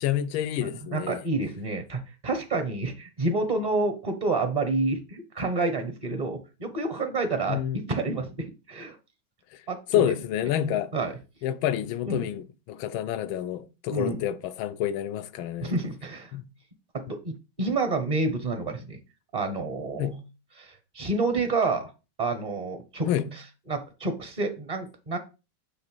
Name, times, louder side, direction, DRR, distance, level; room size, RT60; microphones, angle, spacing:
voice 1, 0.0-1.2 7.5-7.8 9.9-10.9 11.4-15.7 16.3-16.4 20.0-20.2 23.1-23.3, left 11 dB, 85° left, 1.4 m, -28 dB
voice 2, 0.6-9.0 9.7-10.0 10.9-11.1 12.0-12.3 13.9-14.2 15.6-16.3 16.9-17.3 17.6-19.0 19.3-20.1 20.6-21.9 22.2-23.4 23.7-25.2, right 3 dB, 35° right, 0.7 m, -29 dB
7.8 x 3.1 x 6.1 m
omnidirectional pair, 2.1 m